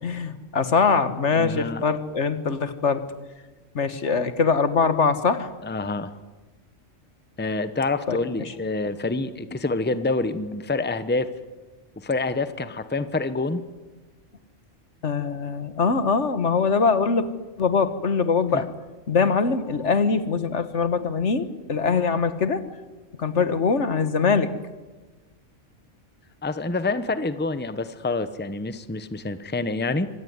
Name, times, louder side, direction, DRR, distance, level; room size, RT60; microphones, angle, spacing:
voice 1, 0.0-3.0 3.7-5.5 8.1-8.2 15.0-17.3 17.6-18.7 19.1-22.7 23.2-24.5, left 5 dB, 65° left, 12 dB, 1.7 m, -22 dB
voice 2, 1.4-1.8 5.6-6.1 7.4-11.3 12.0-13.6 18.5-18.6 26.4-30.1, left 3 dB, 10° left, 12 dB, 0.9 m, -27 dB
25.5 x 18.0 x 9.6 m, 1.2 s
omnidirectional pair, 1.3 m